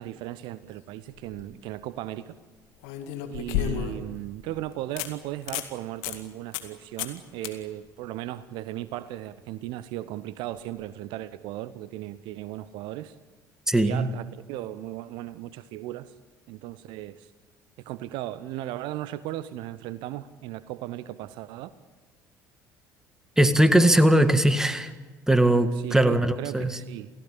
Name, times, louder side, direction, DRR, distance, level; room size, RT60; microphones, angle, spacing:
voice 1, 0.0-2.3 3.3-13.2 13.8-16.1 16.5-17.3 17.8-21.7 25.7-27.1, right 14 dB, 55° right, 16 dB, 0.8 m, -36 dB
sound 1, 1.1-1.4 2.8-4.1 4.5-4.6 5.0-5.1 5.4-5.7 6.0-6.2 6.5-6.7 7.0-7.2 7.4-7.5 10.6-10.7, left 10 dB, 60° left, 2.1 m, -31 dB
voice 2, 13.7-14.1 23.4-24.9 25.3-26.8, right 1 dB, 5° right, 11 dB, 1.9 m, -20 dB
29.0 x 18.0 x 8.7 m, 1.4 s
figure-of-eight pair, 55°, 10 cm